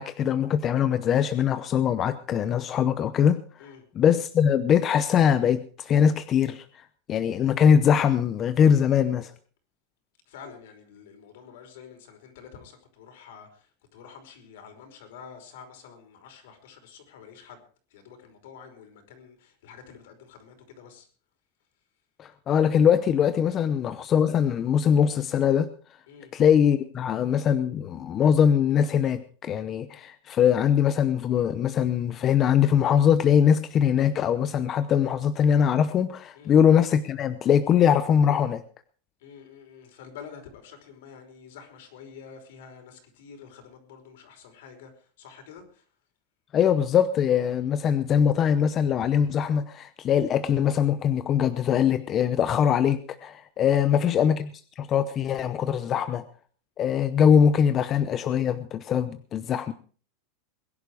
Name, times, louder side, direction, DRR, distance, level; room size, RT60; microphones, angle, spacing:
voice 1, 0.0-3.7 3.9-6.6 7.1-9.3 22.2-25.7 26.3-38.6 46.5-54.5 54.8-56.2 56.8-59.7, left 8 dB, 25° left, 11 dB, 0.8 m, -22 dB
voice 2, 10.3-17.6 17.9-21.1 26.1-26.3 36.3-36.6 39.2-45.8 53.6-54.2, left 7 dB, 70° left, 5 dB, 5.2 m, -48 dB
21.5 x 11.0 x 4.9 m, 0.41 s
supercardioid pair, 165°, 0 cm